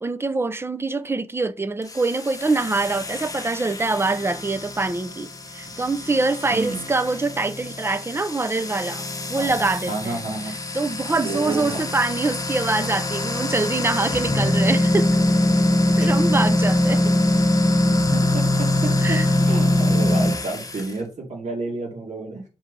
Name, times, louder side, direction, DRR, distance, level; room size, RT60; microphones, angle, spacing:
voice 1, 0.0-9.0 9.3-10.2 10.7-15.2 16.0-17.1 19.0-19.3, right 3 dB, 20° right, 0.5 m, -24 dB
sound 1, 1.8-20.9, left 1 dB, 25° left, 1.0 m, -23 dB
voice 2, 6.5-6.8 9.4-9.6 9.9-10.5 11.2-12.0 16.0-16.1 18.1-19.2 19.4-22.4, right 3 dB, 65° right, 2.5 m, -30 dB
6.1 x 4.2 x 5.2 m
wide cardioid pair, 155°, 13 cm